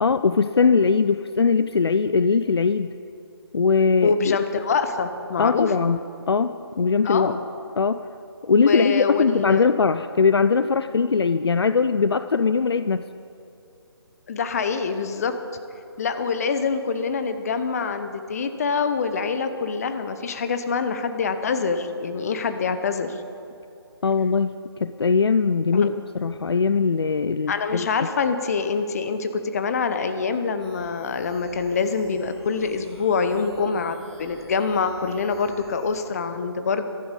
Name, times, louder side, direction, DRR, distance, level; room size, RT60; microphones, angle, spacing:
voice 1, 0.0-2.9 3.5-4.4 5.4-6.0 6.3-7.4 7.8-8.0 8.4-13.0 24.0-28.1, left 5 dB, 70° left, 12 dB, 0.5 m, -21 dB
voice 2, 4.0-5.9 7.0-7.4 8.6-9.7 14.3-15.4 16.0-23.2 25.7-25.9 27.5-36.8, left 5 dB, 35° left, 9 dB, 0.9 m, -25 dB
sound 1, 30.6-36.1, left 1 dB, 5° left, 1.7 m, -49 dB
15.0 x 13.5 x 5.3 m, 2.6 s
figure-of-eight pair, 150°, 14 cm